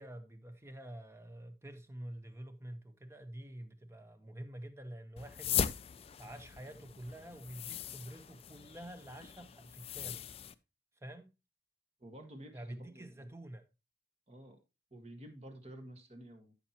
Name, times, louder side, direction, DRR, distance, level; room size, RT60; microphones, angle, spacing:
voice 1, 0.0-5.6 6.2-10.2 11.0-11.3 12.5-13.7, right 1 dB, 15° right, 0.9 m, -48 dB
sound 1, 5.2-10.5, left 8 dB, 30° left, 0.3 m, -39 dB
voice 2, 12.0-13.1 14.3-14.6 14.9-16.5, right 1 dB, 35° right, 1.6 m, -51 dB
13.5 x 5.7 x 2.9 m
head